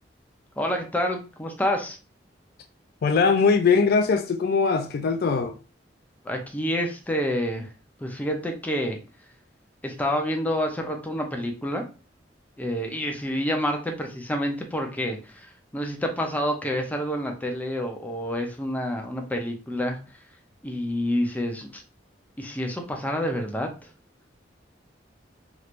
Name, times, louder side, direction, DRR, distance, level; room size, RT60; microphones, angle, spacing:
voice 1, 0.6-2.0 6.2-7.7 8.0-9.0 9.8-11.8 12.6-20.0 20.6-21.8 22.4-23.7, equal, 10° left, 0.6 m, -28 dB
voice 2, 3.0-5.5, left 5 dB, 55° left, 0.3 m, -21 dB
3.2 x 2.9 x 2.5 m
head